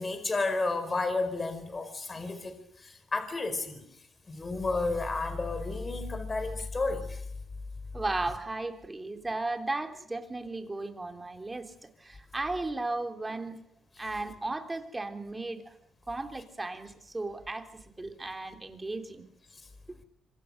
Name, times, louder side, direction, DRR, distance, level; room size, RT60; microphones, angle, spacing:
voice 1, 0.0-3.8 4.3-7.2, left 3 dB, 30° left, 10 dB, 4.9 m, -32 dB
voice 2, 7.9-13.6 14.0-15.8 16.1-17.7 18.0-19.2 19.9-20.0, right 2 dB, 20° right, 6 dB, 3.5 m, -35 dB
26.0 x 25.0 x 6.7 m, 0.77 s
cardioid pair, 90°, 0 cm